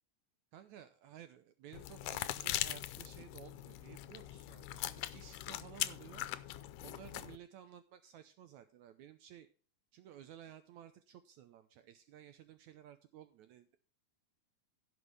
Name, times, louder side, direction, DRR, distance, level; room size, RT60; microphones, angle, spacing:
voice 1, 0.5-6.2 6.8-9.5 9.9-13.8, right 10 dB, 75° right, 10 dB, 2.0 m, -55 dB
sound 1, 1.7-7.4, left 14 dB, 85° left, 2.2 m, -41 dB
16.5 x 6.3 x 3.4 m, 0.38 s
omnidirectional pair, 3.7 m